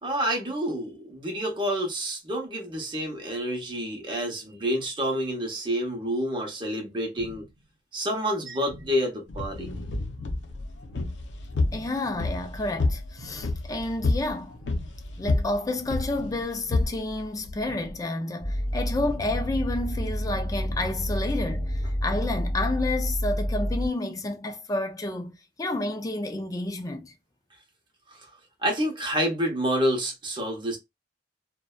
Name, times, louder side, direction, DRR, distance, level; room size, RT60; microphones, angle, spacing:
voice 1, 0.0-7.5 7.9-9.7 28.6-30.8, equal, 25° right, 0.7 m, -28 dB
sound 1, 7.2-7.7 8.7-9.2 10.2-10.7 11.7-12.2 13.2-13.7 14.7-15.2 16.2-16.7 17.7-18.2 19.2-19.7 20.7-21.2, right 1 dB, 60° right, 0.6 m, -46 dB
sound 2, 9.3-18.0, left 2 dB, 80° left, 0.5 m, -30 dB
voice 2, 11.7-14.6 15.2-27.1, left 2 dB, 20° left, 0.4 m, -30 dB
sound 3, 18.4-23.9, equal, 35° left, 0.9 m, -29 dB
2.6 x 2.1 x 2.2 m
head